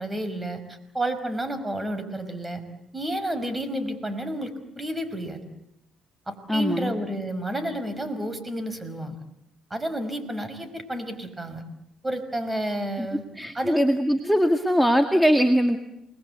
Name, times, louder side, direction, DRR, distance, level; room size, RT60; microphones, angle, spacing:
voice 1, 0.0-2.6 2.9-5.4 6.3-9.2 9.7-11.6 12.0-13.2 13.5-13.9, right 1 dB, 15° right, 10 dB, 5.5 m, -31 dB
voice 2, 6.5-6.9 13.0-13.1 13.4-15.8, equal, ahead, 5 dB, 2.0 m, -21 dB
29.0 x 21.0 x 8.2 m, 0.79 s
supercardioid pair, 80°, 0 cm